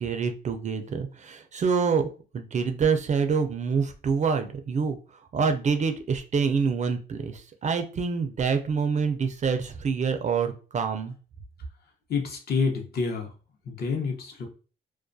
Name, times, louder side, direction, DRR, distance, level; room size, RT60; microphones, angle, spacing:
voice 1, 0.0-11.1, right 5 dB, 35° right, 7 dB, 0.4 m, -26 dB
voice 2, 12.1-13.3 13.6-14.5, left 5 dB, 55° left, 2 dB, 0.7 m, -28 dB
2.3 x 2.2 x 2.5 m, 0.36 s
cardioid pair, 90°, 20 cm